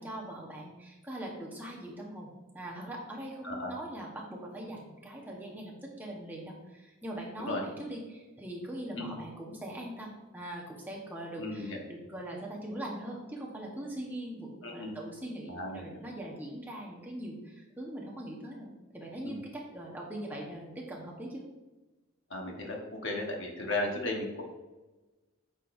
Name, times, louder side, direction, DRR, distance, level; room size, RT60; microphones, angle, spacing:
voice 1, 0.0-2.3 2.5-21.4, right 1 dB, 10° right, -2 dB, 1.1 m, -41 dB
voice 2, 11.4-11.8 14.6-15.0 15.5-15.8 19.2-19.4 22.3-24.4, left 2 dB, 55° left, 0 dB, 1.3 m, -35 dB
8.5 x 5.2 x 2.6 m, 1.1 s
head